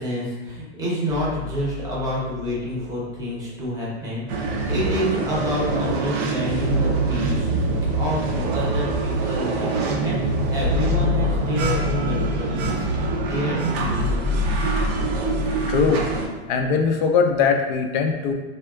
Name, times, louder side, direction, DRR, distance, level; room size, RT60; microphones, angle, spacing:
voice 1, 0.0-7.5 7.7-14.3, equal, 10° right, -6 dB, 0.8 m, -29 dB
sound 1, 1.1-5.1, left 8 dB, 80° left, 0.7 m, -41 dB
sound 2, 4.3-16.3, right 1 dB, 35° right, 0.4 m, -23 dB
voice 2, 15.7-16.0 16.5-18.3, left 5 dB, 45° left, 3 dB, 0.4 m, -20 dB
3.4 x 2.2 x 2.3 m, 1.2 s
hypercardioid pair, 135°, 33 cm